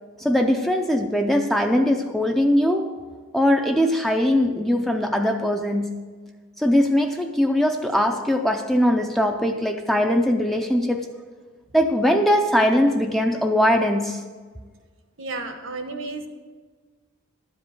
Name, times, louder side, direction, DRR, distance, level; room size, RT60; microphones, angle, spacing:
voice 1, 0.2-3.0 3.3-6.0 6.6-11.1 11.7-14.2, left 1 dB, ahead, 0.4 m, -21 dB
voice 2, 15.2-16.3, right 3 dB, 60° right, 1.0 m, -32 dB
12.5 x 5.2 x 7.9 m
head